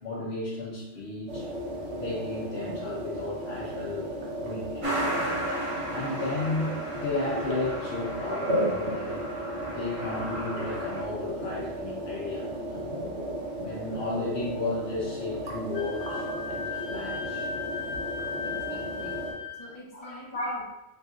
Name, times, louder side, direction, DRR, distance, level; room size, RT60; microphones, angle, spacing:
voice 1, 0.0-1.5 1.9-5.2 5.9-9.2 9.6-12.9 13.6-17.5 19.9-20.6, left 2 dB, 60° left, -5 dB, 1.0 m, -34 dB
sound 1, 1.3-19.3, right 1 dB, 60° right, 1.1 m, -34 dB
Truck, 4.8-11.0, right 1 dB, 30° right, 0.9 m, -35 dB
Wind instrument woodwind instrument, 15.7-19.7, left 6 dB, 85° left, 1.2 m, -36 dB
voice 2, 18.4-19.2 19.5-20.6, left 1 dB, 30° left, -5 dB, 1.0 m, -47 dB
6.2 x 2.5 x 2.4 m, 0.95 s
omnidirectional pair, 1.3 m